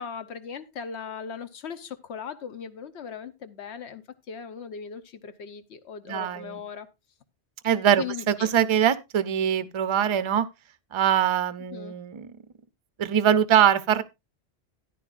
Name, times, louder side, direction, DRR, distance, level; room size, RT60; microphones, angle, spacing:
voice 1, 0.0-6.9 8.0-8.5 11.7-12.0, left 7 dB, 75° left, 1.1 m, -38 dB
voice 2, 6.1-6.6 7.6-10.5 10.9-12.3 13.0-14.0, right 9 dB, 40° right, 0.4 m, -23 dB
13.5 x 10.0 x 2.4 m
omnidirectional pair, 1.2 m